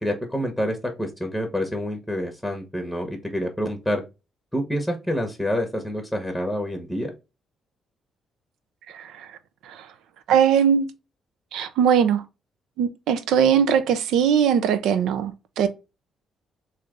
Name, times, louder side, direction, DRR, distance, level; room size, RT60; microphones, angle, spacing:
voice 1, 0.0-4.0 4.5-7.1, equal, ahead, 0.9 m, -27 dB
voice 2, 8.9-9.3 9.7-9.8 10.3-10.9 11.5-12.2 12.8-15.7, right 8 dB, 85° right, 0.5 m, -20 dB
3.3 x 2.7 x 3.6 m
cardioid pair, 90°, 0 cm